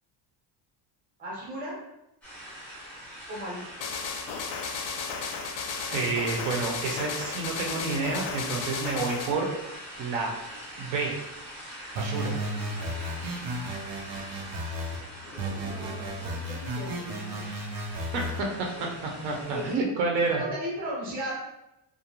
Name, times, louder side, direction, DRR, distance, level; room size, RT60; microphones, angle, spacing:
voice 1, 1.2-1.8 3.3-3.6 15.6-17.5 18.7-18.8 19.5-19.8 20.3-21.3, equal, 20° right, -5 dB, 0.7 m, -36 dB
sound 1, 2.2-19.8, equal, 5° left, 0.3 m, -43 dB
sound 2, 3.8-9.3, left 5 dB, 80° left, 0.6 m, -34 dB
voice 2, 5.9-9.5 10.0-10.3 10.8-11.1 12.0-12.3 18.1-20.4, right 3 dB, 80° right, 1 dB, 0.8 m, -29 dB
sound 3, 12.0-15.0 15.4-18.4, equal, 50° right, 0.5 m, -34 dB
2.4 x 2.2 x 2.9 m, 0.90 s
cardioid pair, 180°, 46 cm